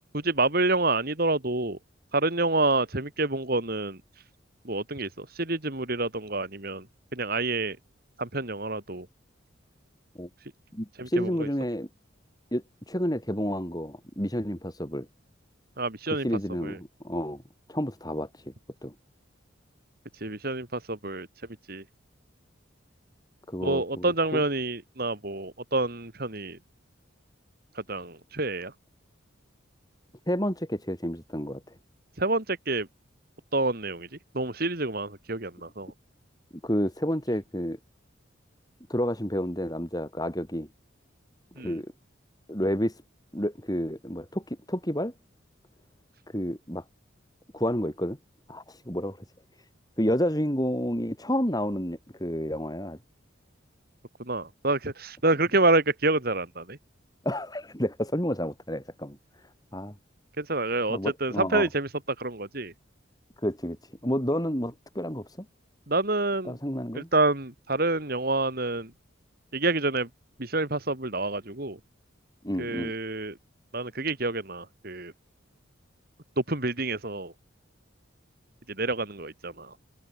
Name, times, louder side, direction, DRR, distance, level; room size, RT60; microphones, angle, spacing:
voice 1, 0.1-1.8 2.1-4.2 4.6-6.9 7.1-7.8 8.2-9.1 10.4-10.5 11.0-11.5 15.8-16.3 16.6-16.8 20.1-21.3 21.7-21.8 23.6-26.6 27.7-28.7 32.2-32.9 33.5-35.9 41.6-41.8 54.2-56.8 60.4-61.9 62.2-62.7 65.9-66.6 66.9-68.9 69.5-70.1 70.4-71.8 72.6-73.4 73.7-75.1 76.4-77.3 78.7-79.7, right 2 dB, 50° right, 2.5 m, -28 dB
voice 2, 10.7-11.9 12.5-15.1 16.2-17.4 17.7-18.5 18.8-18.9 23.5-24.4 30.3-31.8 36.6-37.8 38.9-40.7 41.6-41.9 42.5-43.0 43.3-45.1 46.3-46.8 47.5-48.2 48.5-49.2 50.0-53.0 57.2-59.2 59.7-60.0 60.9-61.7 63.4-65.5 66.5-67.1 72.4-72.9, equal, 20° left, 7.0 m, -30 dB
open air
head